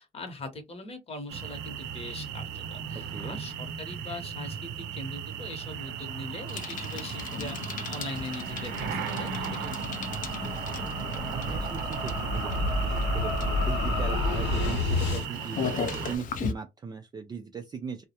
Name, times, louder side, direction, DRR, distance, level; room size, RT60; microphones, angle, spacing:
voice 1, 0.0-10.2, left 2 dB, 35° left, 0.9 m, -41 dB
sound 1, 1.3-16.2, right 8 dB, 85° right, 0.6 m, -36 dB
voice 2, 2.9-3.4 10.3-13.3 13.6-18.0, right 5 dB, 25° right, 0.3 m, -39 dB
Bicycle, 6.5-16.5, left 6 dB, 50° left, 0.5 m, -38 dB
sound 2, 7.6-15.2, left 2 dB, 85° left, 0.7 m, -31 dB
2.2 x 2.0 x 2.8 m
cardioid pair, 110°, 17 cm